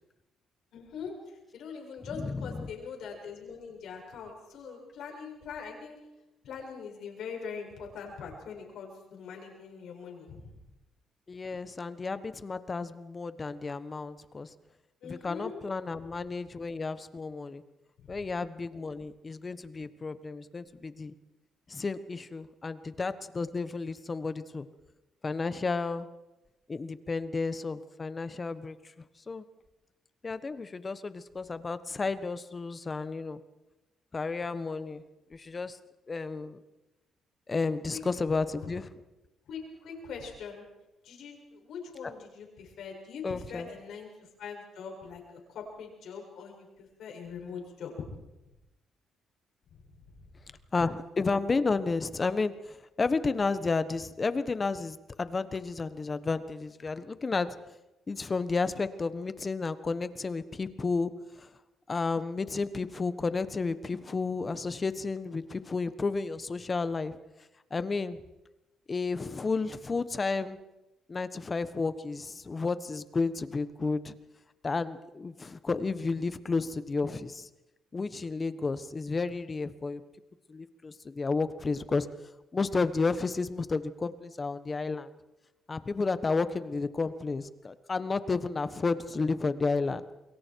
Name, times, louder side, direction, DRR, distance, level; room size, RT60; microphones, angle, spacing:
voice 1, 0.7-1.1 1.5-6.0 6.4-10.5 15.0-15.6 18.0-18.1 37.9-38.0 38.6-38.7 39.5-40.7 41.0-45.2 45.5-48.1, left 6 dB, 75° left, 1 dB, 7.1 m, -42 dB
voice 2, 2.1-2.7 11.3-14.5 15.0-17.6 18.1-21.1 21.7-24.6 25.2-26.1 26.7-28.8 29.3-29.4 30.2-33.4 34.1-35.0 35.3-35.8 36.1-36.6 37.5-38.9 43.2-43.7 50.7-57.5 58.1-61.1 61.4-61.5 61.9-67.2 67.7-68.2 68.9-70.6 71.1-74.1 74.6-77.5 77.9-80.0 80.5-82.1 82.5-85.1 85.7-90.0, left 4 dB, 30° left, 12 dB, 1.4 m, -32 dB
29.0 x 22.5 x 4.8 m, 0.99 s
cardioid pair, 90°, 0 cm